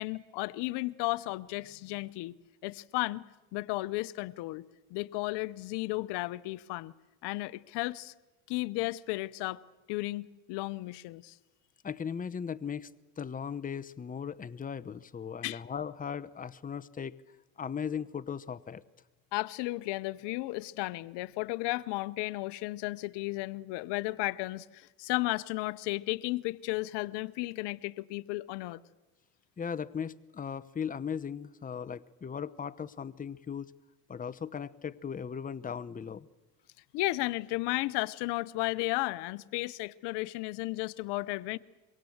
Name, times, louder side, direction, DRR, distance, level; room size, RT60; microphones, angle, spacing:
voice 1, 0.0-2.3 2.6-3.2 3.5-4.6 4.9-6.9 7.2-8.1 8.5-9.6 9.9-11.4 15.4-15.6 19.3-28.8 36.9-41.6, left 20 dB, 75° left, 0.8 m, -34 dB
voice 2, 11.8-12.9 13.2-17.2 17.6-18.8 29.6-33.7 34.1-36.3, left 7 dB, 20° left, 0.8 m, -37 dB
25.0 x 23.0 x 7.9 m
supercardioid pair, 95°, 41 cm